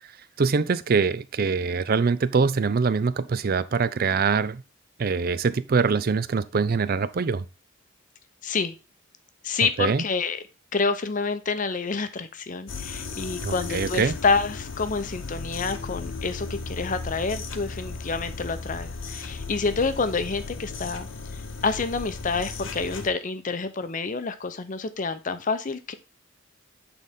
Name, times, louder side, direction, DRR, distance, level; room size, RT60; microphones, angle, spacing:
voice 1, 0.4-4.6 5.0-7.4 9.8-10.0 13.4-14.1, right 5 dB, 45° right, 0.4 m, -23 dB
voice 2, 8.4-8.7 9.4-10.4 10.7-21.1 21.6-25.9, left 4 dB, 40° left, 0.6 m, -28 dB
sound 1, 12.7-23.1, left 4 dB, 65° left, 0.9 m, -36 dB
8.5 x 3.9 x 3.6 m
head